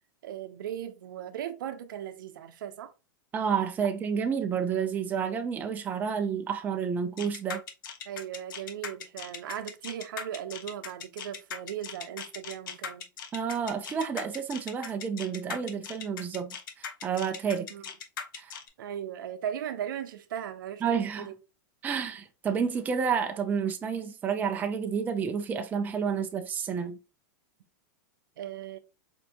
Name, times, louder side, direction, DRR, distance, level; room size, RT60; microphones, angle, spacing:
voice 1, 0.2-2.9 8.1-13.1 17.7-17.8 18.8-21.3 28.4-28.8, right 10 dB, 80° right, 0.6 m, -37 dB
voice 2, 3.3-7.6 13.3-17.7 18.4-18.6 20.8-21.3 21.8-27.0, right 7 dB, 15° right, 0.4 m, -30 dB
sound 1, 7.2-18.7, left 7 dB, 75° left, 0.7 m, -39 dB
4.3 x 2.6 x 2.8 m
supercardioid pair, 145°, 11 cm